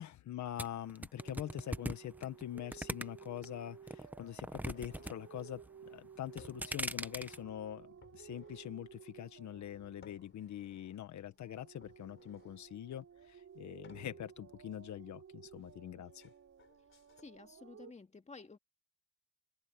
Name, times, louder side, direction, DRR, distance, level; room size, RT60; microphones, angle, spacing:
voice 1, 0.0-16.2, left 11 dB, 70° left, 1.4 m, -44 dB
sound 1, 0.6-3.5 3.9-5.1 5.4-5.9 6.3-7.4, right 1 dB, 5° right, 0.9 m, -40 dB
sound 2, 1.2-11.0 11.3-17.9, right 7 dB, 50° right, 7.7 m, -56 dB
sound 3, 3.3-17.2, left 6 dB, 40° left, 4.3 m, -65 dB
voice 2, 17.2-18.6, left 4 dB, 25° left, 2.1 m, -53 dB
open air
cardioid pair, 90°, 30 cm